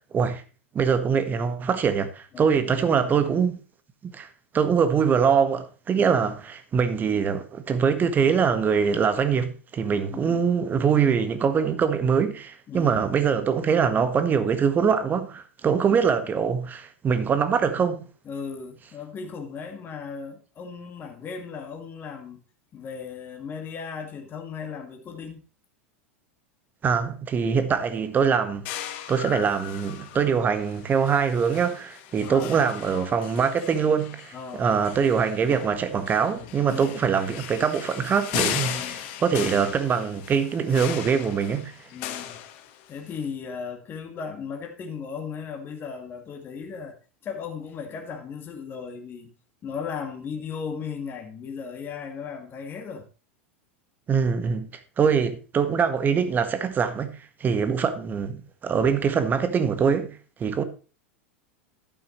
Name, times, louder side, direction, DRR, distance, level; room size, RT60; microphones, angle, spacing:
voice 1, 0.7-3.6 4.0-4.3 4.5-18.1 26.8-28.7 29.1-41.9 54.1-54.7 55.0-57.1 57.4-60.6, right 6 dB, 25° right, 1.4 m, -23 dB
voice 2, 2.3-3.2 5.9-6.3 10.1-10.5 12.7-13.0 15.9-16.0 18.3-22.4 22.7-25.4 32.2-32.6 34.3-34.7 36.6-36.8 38.6-39.0 41.9-42.4 42.9-46.9 47.2-49.3 49.6-53.1 57.5-57.6, left 6 dB, 30° left, 1.9 m, -36 dB
sound 1, 28.6-43.1, left 11 dB, 55° left, 1.3 m, -37 dB
11.5 x 9.0 x 3.1 m
hypercardioid pair, 90°, 7 cm